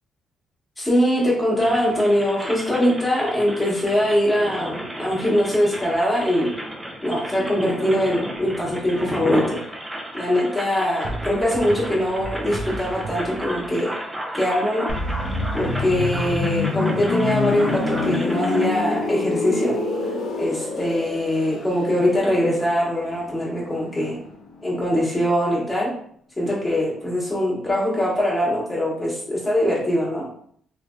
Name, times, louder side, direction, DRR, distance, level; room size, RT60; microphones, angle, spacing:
voice 1, 0.8-6.5 7.0-9.6 10.1-13.9 14.3-14.9 15.5-19.7 20.4-24.2 24.6-25.9 26.4-30.2, equal, 15° left, -6 dB, 1.4 m, -22 dB
sound 1, 1.6-18.7, equal, 10° right, 0.6 m, -33 dB
sound 2, 8.4-8.8 11.0-13.7, right 2 dB, 55° right, 0.6 m, -34 dB
sound 3, 14.9-24.5 24.8-25.0, left 3 dB, 65° left, 0.6 m, -27 dB
3.2 x 2.6 x 2.4 m, 0.65 s
cardioid pair, 90°, 0 cm